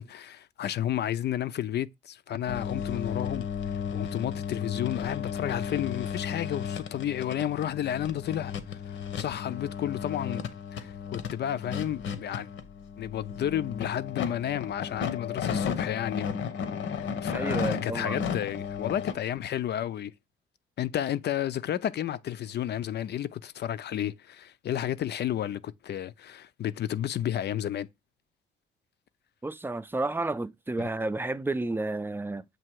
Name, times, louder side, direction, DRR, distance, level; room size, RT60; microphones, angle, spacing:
voice 1, 0.0-10.4 10.7-12.5 13.0-16.4 17.0-20.1 20.8-27.9 30.8-30.9, left 11 dB, 55° left, 0.5 m, -32 dB
sound 1, 2.5-19.1, left 7 dB, 75° left, 1.0 m, -34 dB
voice 2, 17.3-18.2 29.4-32.4, right 2 dB, 10° right, 0.5 m, -31 dB
7.6 x 2.9 x 4.6 m
cardioid pair, 90°, 20 cm